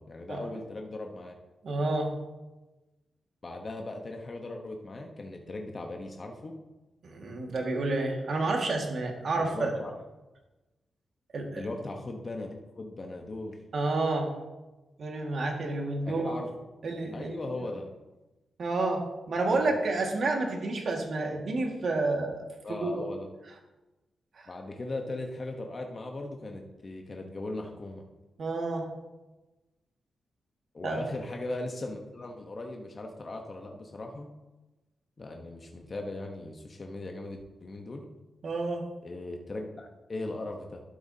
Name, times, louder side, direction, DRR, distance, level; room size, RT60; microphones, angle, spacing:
voice 1, 0.0-1.3 3.4-6.5 9.4-9.9 11.6-13.6 16.0-16.5 17.1-17.9 19.5-19.8 22.6-23.3 24.5-28.0 30.7-34.3 35.2-38.0 39.0-40.8, left 2 dB, 40° left, 2 dB, 1.0 m, -38 dB
voice 2, 1.6-2.1 7.0-9.7 11.3-11.6 13.7-14.3 15.0-16.3 16.8-17.4 18.6-22.4 22.7-23.0 24.4-24.5 28.4-28.9 30.8-31.0 38.4-38.8, right 2 dB, 60° right, 1 dB, 1.8 m, -30 dB
12.0 x 8.0 x 2.8 m, 1.1 s
cardioid pair, 90°, 0 cm